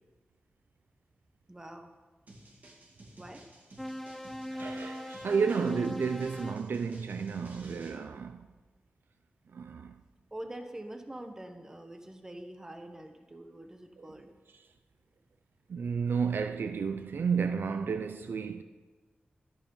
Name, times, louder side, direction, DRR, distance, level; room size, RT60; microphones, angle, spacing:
voice 1, 1.5-1.9 3.2-3.5 10.3-14.3, right 1 dB, 15° right, 1.2 m, -45 dB
sound 1, 2.3-8.0, right 1 dB, 50° right, 2.7 m, -54 dB
sound 2, 3.8-6.7, equal, 5° left, 0.4 m, -40 dB
voice 2, 4.5-8.5 9.5-10.0 14.0-14.1 15.7-18.6, right 5 dB, 80° right, 0.6 m, -32 dB
15.5 x 12.5 x 5.5 m
wide cardioid pair, 140°, 4 cm